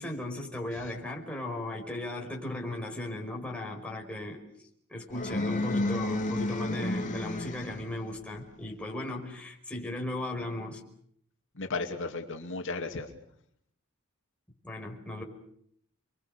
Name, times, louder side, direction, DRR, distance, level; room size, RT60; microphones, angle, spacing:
voice 1, 0.0-4.4 4.9-10.8 14.6-15.2, left 1 dB, 5° left, 0 dB, 5.3 m, -36 dB
sound 1, 5.1-8.0, left 2 dB, 35° left, 2.6 m, -31 dB
voice 2, 11.6-13.1, left 3 dB, 60° left, 3 dB, 2.6 m, -34 dB
30.0 x 23.5 x 6.7 m, 0.69 s
head